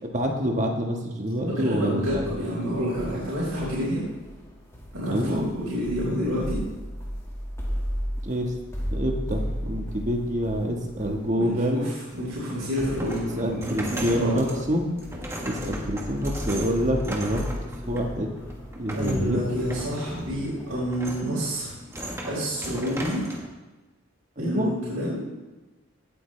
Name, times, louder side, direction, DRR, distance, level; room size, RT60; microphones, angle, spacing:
voice 1, 0.0-2.3 5.1-5.5 8.2-8.5 8.9-11.9 13.4-14.9 15.4-17.5 17.9-18.3 18.8-19.4 24.4-24.7, equal, 35° right, 2 dB, 1.4 m, -27 dB
voice 2, 1.4-4.0 4.9-6.6 11.4-14.6 18.9-21.7 22.3-23.2 24.4-25.3, equal, 80° right, -8 dB, 4.5 m, -29 dB
sound 1, 2.1-21.6, equal, 15° left, 1.8 m, -36 dB
sound 2, 12.1-23.5, equal, 10° right, 1.3 m, -37 dB
17.0 x 8.5 x 3.3 m, 1.1 s
head